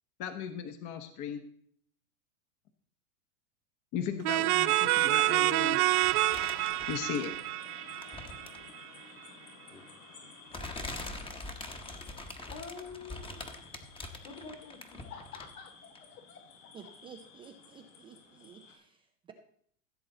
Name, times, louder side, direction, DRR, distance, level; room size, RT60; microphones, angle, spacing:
voice 1, 0.2-1.4 3.9-5.8 6.9-7.3, left 7 dB, 40° left, 8 dB, 1.1 m, -36 dB
sound 1, 4.2-8.8, right 18 dB, 80° right, 0.6 m, -28 dB
sound 2, 4.5-18.8, left 5 dB, 60° left, 4.7 m, -53 dB
sound 3, 6.0-7.5 7.9-8.7 9.7-9.8 10.5-15.6 15.9-16.0, left 2 dB, 10° left, 1.0 m, -43 dB
voice 2, 12.5-13.4 14.2-16.4, left 5 dB, 80° left, 3 dB, 3.1 m, -47 dB
voice 3, 16.7-19.3, right 7 dB, 15° right, 4 dB, 0.3 m, -52 dB
15.5 x 7.5 x 3.9 m, 0.64 s
supercardioid pair, 130°, 45 cm